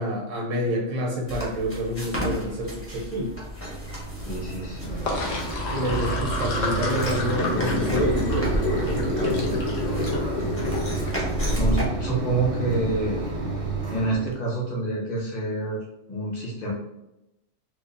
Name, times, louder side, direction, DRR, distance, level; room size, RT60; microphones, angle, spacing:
voice 1, 0.0-3.3 5.7-9.6, equal, 85° right, -1 dB, 1.0 m, -28 dB
sound 1, 1.3-11.9, equal, 15° left, 0.6 m, -33 dB
Mechanisms, 3.4-14.4, right 3 dB, 55° right, 0.5 m, -31 dB
voice 2, 4.2-5.0 11.5-13.2 13.9-16.7, right 2 dB, 40° left, -4 dB, 0.9 m, -27 dB
Sink (filling or washing), 4.8-11.1, left 2 dB, 80° left, 1.1 m, -28 dB
3.1 x 2.1 x 2.4 m, 0.89 s
omnidirectional pair, 1.3 m